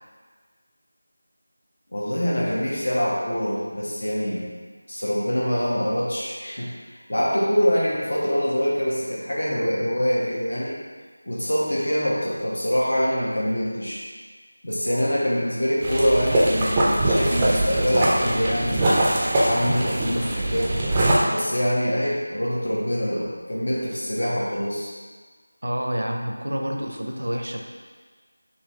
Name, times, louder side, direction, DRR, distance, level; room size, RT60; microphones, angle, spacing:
voice 1, 1.9-4.4 4.9-6.7 7.1-10.8 11.3-14.0 14.6-19.0 19.4-20.8 21.3-24.9, equal, 65° left, -5 dB, 1.2 m, -24 dB
sound 1, 15.8-21.2, right 1 dB, 15° right, 0.4 m, -22 dB
voice 2, 25.6-27.6, equal, 75° right, 2 dB, 0.6 m, -28 dB
3.9 x 2.9 x 3.2 m, 1.5 s
figure-of-eight pair, 170°, 0 cm